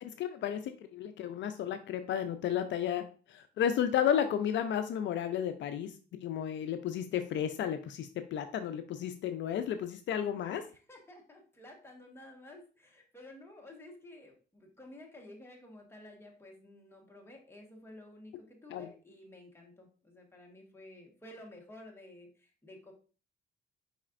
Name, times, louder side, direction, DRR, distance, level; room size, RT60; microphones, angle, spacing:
voice 1, 0.0-6.0 6.2-10.6 18.7-18.9, left 9 dB, 70° left, 9 dB, 0.4 m, -33 dB
voice 2, 10.9-22.9, left 1 dB, 10° left, 0 dB, 1.3 m, -52 dB
4.8 x 4.2 x 2.5 m, 0.38 s
cardioid pair, 90°, 20 cm